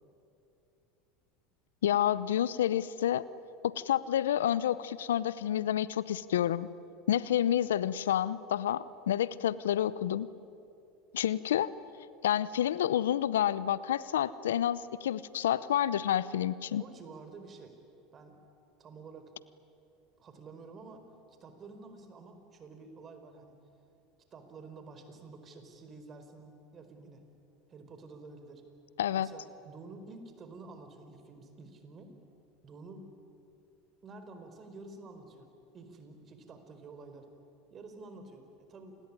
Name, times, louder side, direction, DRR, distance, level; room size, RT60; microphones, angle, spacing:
voice 1, 1.8-3.3 3.8-6.7 7.1-10.3 11.1-11.7 12.2-16.8 29.0-29.3, left 11 dB, 80° left, 18 dB, 0.7 m, -29 dB
voice 2, 16.8-17.7 18.1-18.4 18.8-19.3 20.2-21.0 21.4-23.6 24.3-27.2 27.7-28.6 29.2-32.2 32.6-33.1 34.0-35.5 35.7-37.3 37.7-39.0, right 3 dB, 35° right, 7 dB, 4.6 m, -49 dB
28.5 x 20.0 x 9.9 m, 2.7 s
hypercardioid pair, 80°, 0 cm